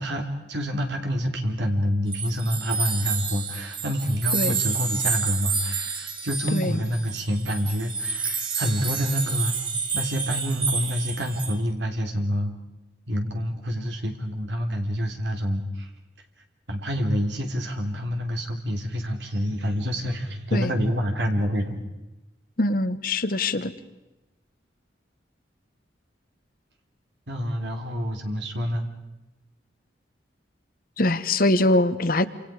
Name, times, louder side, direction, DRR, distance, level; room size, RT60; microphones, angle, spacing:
voice 1, 0.0-9.5 9.9-12.5 13.1-15.9 16.7-21.8 27.3-28.9, equal, 75° right, 3 dB, 3.2 m, -27 dB
sound 1, 2.1-11.6, right 5 dB, 30° right, 2.7 m, -29 dB
voice 2, 22.6-23.7 31.0-32.3, left 1 dB, 50° left, 12 dB, 1.2 m, -23 dB
29.5 x 27.0 x 5.0 m, 1.0 s
head